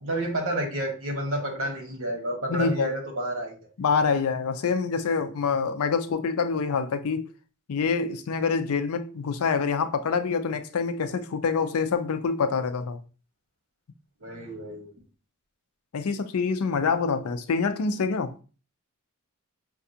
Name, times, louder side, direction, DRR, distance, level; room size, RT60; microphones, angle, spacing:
voice 1, 0.0-3.6 14.2-14.9, right 1 dB, 65° right, 1.3 m, -30 dB
voice 2, 2.5-2.9 3.8-7.3 7.7-13.0 15.9-18.4, left 5 dB, 75° left, 0.4 m, -26 dB
5.7 x 2.3 x 2.7 m
head